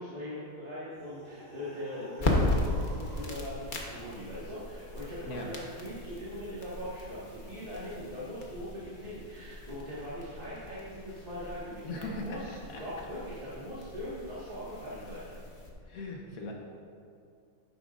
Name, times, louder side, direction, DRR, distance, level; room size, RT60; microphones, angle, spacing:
voice 1, 0.0-15.3, equal, 30° right, -10 dB, 1.7 m, -41 dB
sound 1, 0.9-3.5, right 1 dB, 60° right, 2.8 m, -49 dB
sound 2, 2.1-15.7, left 2 dB, 40° left, 1.1 m, -37 dB
voice 2, 11.8-12.4 12.7-13.1 15.8-16.5, left 2 dB, 80° left, 0 dB, 1.3 m, -39 dB
11.0 x 9.3 x 2.5 m, 2.4 s
omnidirectional pair, 1.5 m